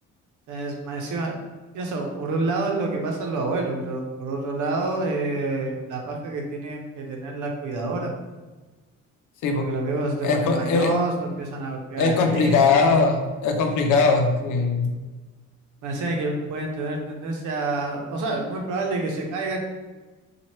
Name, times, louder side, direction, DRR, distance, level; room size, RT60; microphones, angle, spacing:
voice 1, 0.5-1.4 1.7-8.1 9.5-12.9 15.8-19.6, right 2 dB, 80° right, 1 dB, 0.8 m, -28 dB
voice 2, 10.2-10.9 12.0-14.9, left 4 dB, 85° left, 3 dB, 0.7 m, -20 dB
3.1 x 2.4 x 4.3 m, 1.3 s
cardioid pair, 90°, 30 cm